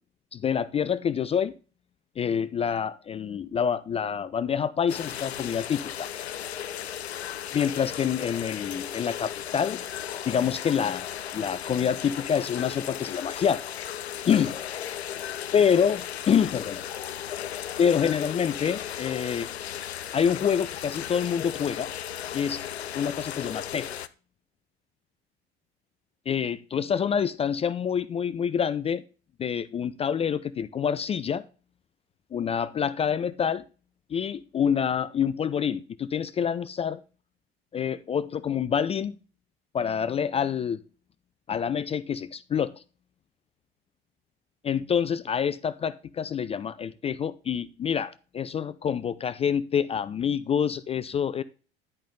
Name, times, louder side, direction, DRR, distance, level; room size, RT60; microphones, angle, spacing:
voice 1, 0.3-1.5 2.2-6.1 7.5-9.8 10.3-11.1 11.3-13.7 14.3-14.5 15.5-16.9 17.8-19.5 20.1-21.9 22.3-22.6 22.9-24.0 26.3-29.0 29.4-31.4 32.3-33.6 34.1-37.0 37.7-39.1 39.7-40.8 41.5-42.8 44.6-51.4, left 7 dB, 20° left, 0.4 m, -27 dB
sound 1, 4.9-24.1, left 10 dB, 85° left, 0.5 m, -36 dB
10.5 x 5.4 x 3.6 m
figure-of-eight pair, 70°, 32 cm